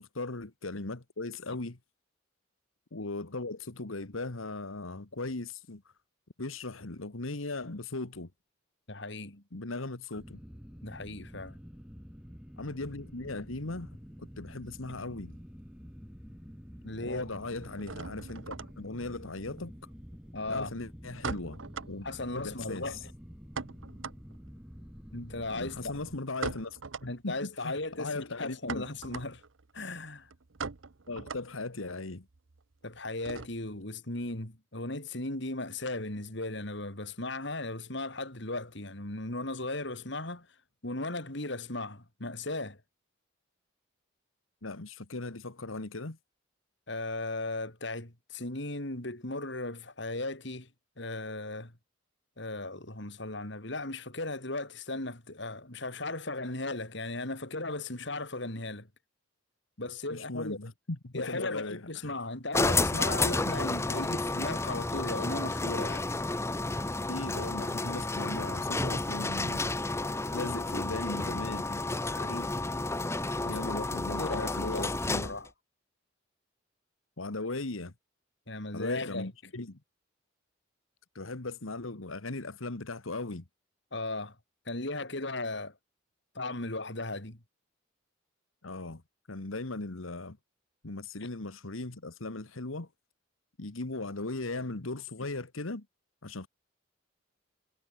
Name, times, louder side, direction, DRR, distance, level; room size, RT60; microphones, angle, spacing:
voice 1, 0.0-1.8 2.9-5.9 6.4-8.3 9.5-10.4 12.6-13.9 14.2-15.4 17.0-19.9 20.5-22.0 22.3-23.1 25.5-28.8 31.1-32.3 44.6-46.2 60.1-62.2 67.1-69.7 70.3-71.8 73.5-75.3 77.2-77.9 78.7-79.8 81.1-83.4 88.6-89.0 89.3-90.4 90.8-92.9 93.6-95.8 96.2-96.5, left 2 dB, 85° left, 1.7 m, -38 dB
voice 2, 8.9-9.4 10.8-11.6 16.8-17.2 20.3-20.7 22.0-23.0 25.1-25.9 27.1-29.4 29.7-30.3 32.8-40.5 40.8-42.8 46.9-50.7 51.0-51.7 52.4-58.9 59.8-60.6 61.1-66.1 72.1-72.6 73.4-73.6 74.2-74.9 75.2-75.5 78.5-79.3 83.9-84.4 84.7-85.7 86.4-87.4 91.2-91.3, left 2 dB, 60° left, 3.8 m, -36 dB
sound 1, 10.1-26.2, equal, 5° right, 4.9 m, -48 dB
sound 2, 14.0-15.6 15.8-16.6 16.8-33.8, right 4 dB, 75° right, 0.9 m, -43 dB
sound 3, 62.5-75.5, left 2 dB, 15° left, 0.8 m, -31 dB
head